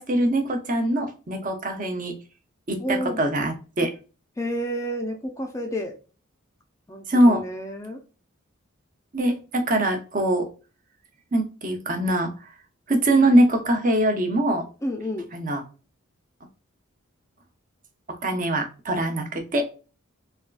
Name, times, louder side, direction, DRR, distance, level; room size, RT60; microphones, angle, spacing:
voice 1, 0.0-2.2 2.7-3.9 7.1-7.4 9.1-10.5 11.3-12.3 12.9-14.7 15.3-15.6 18.2-19.6, right 1 dB, 40° right, 5 dB, 0.6 m, -22 dB
voice 2, 2.8-3.2 4.4-6.0 6.9-8.0 14.8-15.3, equal, 15° left, 3 dB, 0.4 m, -30 dB
3.4 x 2.3 x 2.3 m, 0.33 s
head